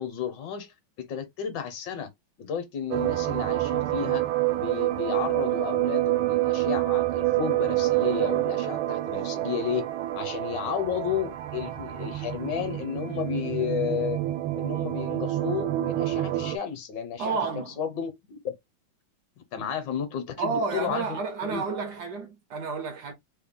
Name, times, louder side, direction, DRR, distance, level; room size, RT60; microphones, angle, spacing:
voice 1, 0.0-2.1 2.4-4.2 4.5-9.8 10.1-14.2 14.6-18.5 19.5-21.6, left 8 dB, 70° left, 1.3 m, -32 dB
sound 1, 2.9-16.6, right 16 dB, 85° right, 1.4 m, -27 dB
voice 2, 17.2-17.8 19.6-19.7 20.4-23.1, right 5 dB, 70° right, 1.0 m, -31 dB
3.4 x 2.2 x 3.6 m
omnidirectional pair, 2.2 m